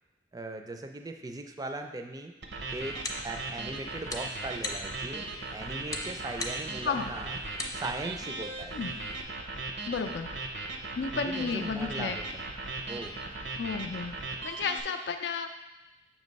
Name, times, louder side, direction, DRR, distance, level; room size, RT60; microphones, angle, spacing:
voice 1, 0.3-2.3 2.7-5.3 5.5-7.4 7.7-8.7 11.1-12.4 12.9-13.2, right 2 dB, 20° right, 5 dB, 0.4 m, -39 dB
sound 1, 2.4-14.8, right 3 dB, 80° right, 0.7 m, -38 dB
sound 2, 2.7-9.2, left 2 dB, 20° left, 0.6 m, -42 dB
voice 2, 9.9-10.3 11.0-12.2 13.6-14.1 14.4-15.5, left 5 dB, 80° left, 7 dB, 0.4 m, -32 dB
7.3 x 3.1 x 5.2 m, 1.1 s
head